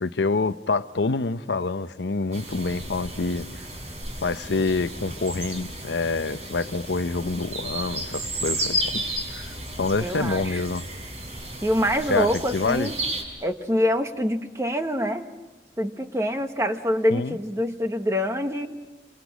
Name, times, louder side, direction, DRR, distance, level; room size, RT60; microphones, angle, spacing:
voice 1, 0.0-3.5 4.2-9.0 9.3-10.8 12.1-12.9 17.1-17.4, left 3 dB, 85° left, 0.7 m, -27 dB
sound 1, 2.3-13.2, right 1 dB, 40° right, 5.6 m, -33 dB
voice 2, 10.0-10.6 11.6-12.9 13.4-15.3 15.8-18.7, equal, 15° right, 1.4 m, -25 dB
27.5 x 27.0 x 6.2 m
head